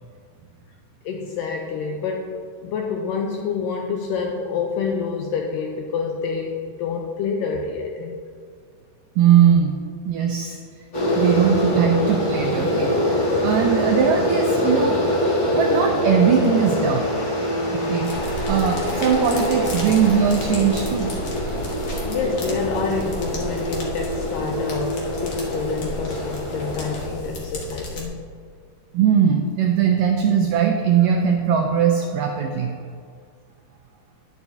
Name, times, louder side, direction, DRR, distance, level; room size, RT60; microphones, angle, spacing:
voice 1, 1.0-8.1 22.0-28.2, left 5 dB, 85° left, 1 dB, 1.9 m, -27 dB
voice 2, 9.2-9.7 10.1-10.6 11.1-13.1 13.4-15.0 15.5-17.1 17.7-21.2 28.9-32.7, right 7 dB, 85° right, 2 dB, 1.9 m, -20 dB
sound 1, 10.9-27.1, equal, 35° left, 1.7 m, -24 dB
sound 2, 18.0-28.0, left 1 dB, 65° left, 1.4 m, -33 dB
11.0 x 10.5 x 2.7 m, 2.2 s
omnidirectional pair, 4.5 m